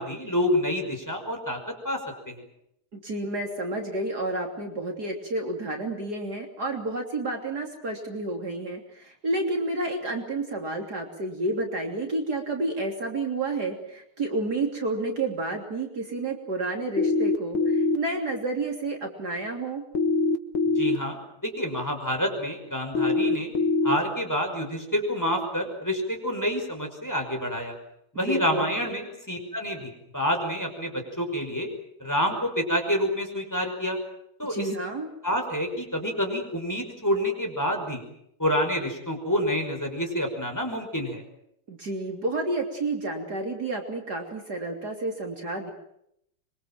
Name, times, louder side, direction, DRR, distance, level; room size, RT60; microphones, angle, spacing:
voice 1, 0.0-1.6 1.8-2.0 2.3-2.4 20.8-23.5 23.8-27.8 28.1-31.7 32.0-34.0 34.4-34.7 35.2-38.0 38.4-41.2, equal, 10° left, 3 dB, 5.5 m, -28 dB
voice 2, 2.9-19.8 28.2-28.7 34.5-35.1 41.7-45.7, right 2 dB, 50° right, 2 dB, 3.6 m, -30 dB
sound 1, 17.0-18.0 19.9-21.0 22.9-24.0, left 3 dB, 85° left, 2.4 m, -23 dB
25.5 x 23.5 x 7.6 m, 0.75 s
omnidirectional pair, 2.2 m